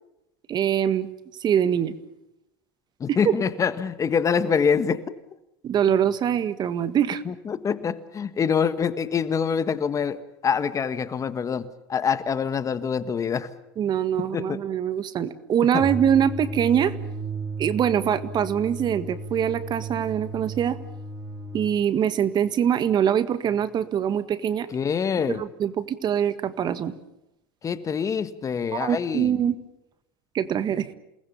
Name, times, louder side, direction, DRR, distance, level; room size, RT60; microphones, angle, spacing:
voice 1, 0.5-1.1 1.4-1.9 3.1-3.4 5.6-7.2 13.8-16.9 17.6-20.8 21.5-24.7 25.3-26.9 28.7-29.5 30.3-30.9, right 9 dB, 35° right, 13 dB, 1.7 m, -23 dB
voice 2, 3.0-5.1 7.2-13.5 14.3-14.6 15.7-15.8 24.7-25.5 27.6-29.4, left 6 dB, 25° left, 13 dB, 1.5 m, -25 dB
sound 1, 15.8-21.8, right 2 dB, 20° right, 2.2 m, -34 dB
28.5 x 20.0 x 7.0 m, 0.86 s
hypercardioid pair, 100°, 12 cm